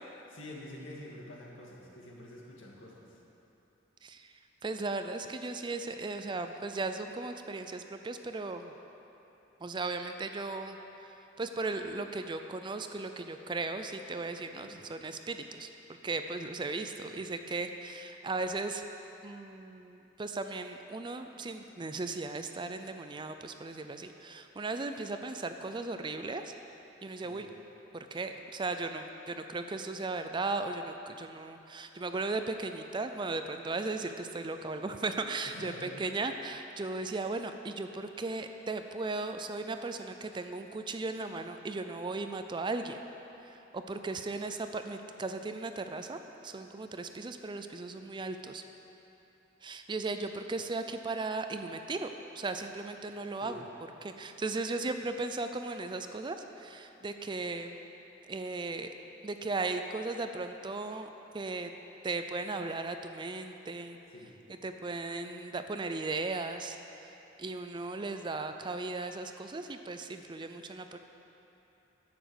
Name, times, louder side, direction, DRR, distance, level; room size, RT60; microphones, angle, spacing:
voice 1, 0.3-3.2 14.6-14.8 17.0-17.2 27.2-27.4 35.4-36.0 53.4-53.6 64.1-64.3, left 1 dB, 75° left, -3 dB, 2.1 m, -47 dB
voice 2, 4.6-8.7 9.6-10.8 11.4-15.7 16.0-18.8 19.2-26.5 27.0-27.5 27.9-43.0 43.5-48.6 49.6-52.1 52.4-53.6 54.0-57.7 58.3-58.9 59.2-61.1 61.3-61.7 62.0-64.0 64.6-66.8 67.0-67.1 67.4-71.0, right 3 dB, 25° right, 7 dB, 0.4 m, -36 dB
10.5 x 7.1 x 7.8 m, 3.0 s
head